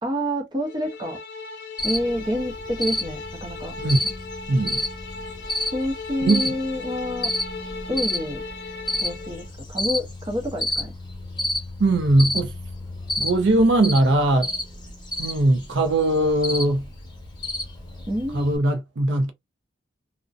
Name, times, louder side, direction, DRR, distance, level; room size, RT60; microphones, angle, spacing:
voice 1, 0.0-1.2 1.8-3.7 5.7-7.3 7.9-8.4 9.0-10.9 18.1-18.5, equal, 25° right, 0.7 m, -28 dB
sound 1, 0.6-9.5, left 4 dB, 60° left, 0.4 m, -37 dB
Cricket, 1.8-18.6, left 1 dB, 25° left, 0.8 m, -31 dB
voice 2, 4.5-4.8 6.2-6.4 11.8-12.5 13.2-14.5 15.2-16.9 18.3-19.3, right 1 dB, 75° right, 0.5 m, -20 dB
2.5 x 2.1 x 2.4 m
head